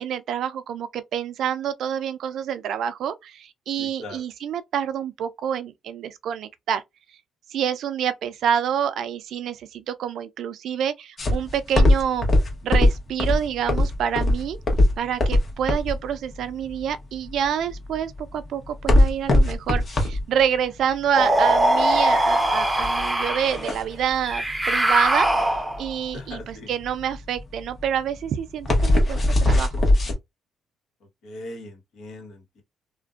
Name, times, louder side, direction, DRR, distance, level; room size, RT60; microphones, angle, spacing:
voice 1, 0.0-6.8 7.5-12.3 12.6-14.6 15.0-25.3 25.8-29.7, right 8 dB, 75° right, 0.4 m, -27 dB
voice 2, 3.8-4.2 26.1-26.7 31.2-32.6, left 2 dB, 75° left, 1.1 m, -39 dB
sound 1, 11.2-30.1, left 1 dB, 40° left, 0.8 m, -21 dB
sound 2, 21.1-23.6 24.3-25.9, right 1 dB, 10° right, 0.6 m, -21 dB
2.5 x 2.2 x 2.3 m
cardioid pair, 90°, 0 cm